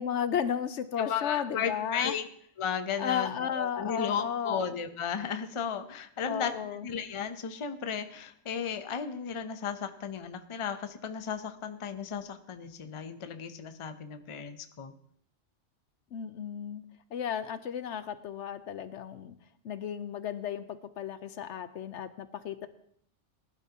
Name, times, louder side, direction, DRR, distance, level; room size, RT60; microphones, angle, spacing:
voice 1, 0.0-2.1 3.0-4.7 6.3-6.9 16.1-16.8 17.1-19.3 19.6-22.7, left 8 dB, 75° left, 12 dB, 1.0 m, -34 dB
voice 2, 1.0-2.3 2.6-6.5 6.8-14.9, left 7 dB, 35° left, 9 dB, 0.6 m, -35 dB
19.0 x 11.5 x 2.9 m, 0.64 s
omnidirectional pair, 1.2 m